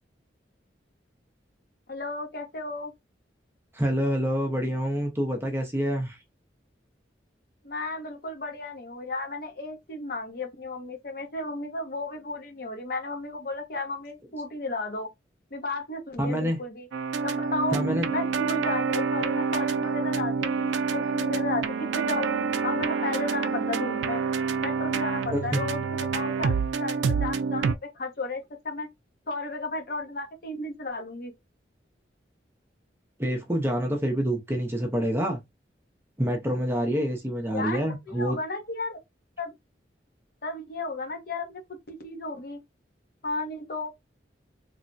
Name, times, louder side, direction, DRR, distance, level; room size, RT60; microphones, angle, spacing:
voice 1, 1.9-2.9 7.6-15.1 15.5-16.9 17.2-17.8 18.1-24.2 24.6-28.9 29.3-31.3 37.5-39.0 39.4-39.5 40.4-42.6 43.2-43.9, left 2 dB, 55° left, 0.7 m, -34 dB
voice 2, 3.7-6.2 16.2-16.6 17.7-18.1 25.3-25.6 33.2-35.4 36.2-38.4, equal, 15° right, 0.5 m, -27 dB
sound 1, 16.9-27.7, right 5 dB, 90° right, 0.3 m, -27 dB
3.1 x 2.0 x 2.5 m
head